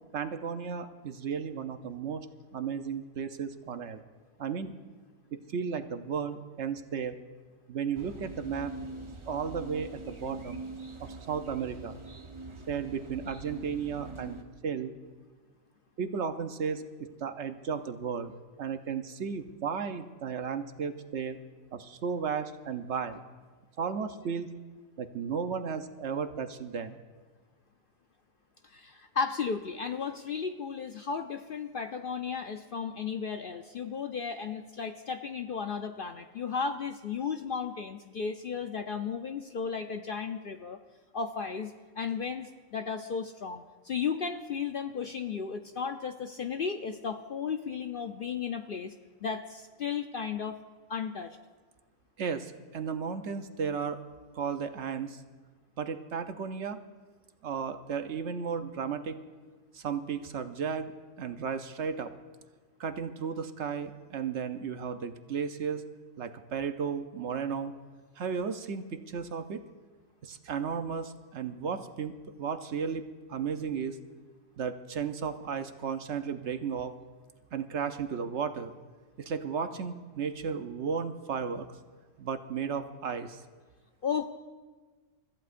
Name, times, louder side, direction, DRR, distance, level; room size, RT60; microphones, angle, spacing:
voice 1, 0.1-2.3 2.5-4.0 4.4-4.7 5.3-7.2 7.7-8.7 9.3-10.6 11.0-12.0 12.7-14.4 14.6-14.9 16.0-18.3 18.6-21.4 21.7-23.2 23.8-24.5 25.0-27.0 52.2-54.0 54.3-55.2 55.8-56.8 57.4-59.2 59.7-60.9 61.2-62.1 62.8-65.8 66.2-67.7 68.2-69.6 70.2-74.0 74.6-76.9 77.5-78.7 79.2-81.7 82.2-83.4, right 6 dB, 60° right, 8 dB, 1.0 m, -34 dB
sound 1, 7.9-14.4, right 2 dB, 25° right, 0.9 m, -43 dB
voice 2, 28.7-40.8 41.1-48.9 49.2-50.6 50.9-51.4 84.0-84.3, left 6 dB, 55° left, 6 dB, 0.6 m, -34 dB
29.5 x 14.5 x 2.5 m, 1.4 s
omnidirectional pair, 1.4 m